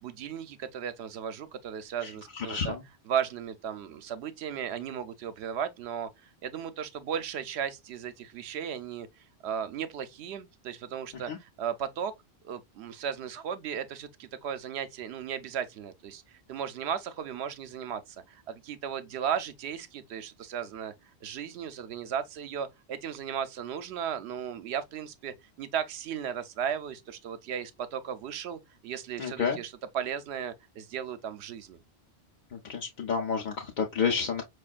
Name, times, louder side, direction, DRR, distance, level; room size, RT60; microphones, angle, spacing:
voice 1, 0.0-2.8 3.1-6.1 6.4-12.1 12.4-20.9 21.2-31.8, right 8 dB, 80° right, 0.8 m, -35 dB
voice 2, 2.4-2.8 11.3-11.4 29.2-29.6 32.7-34.4, left 6 dB, 55° left, 0.7 m, -29 dB
5.0 x 2.3 x 2.3 m
omnidirectional pair, 1.1 m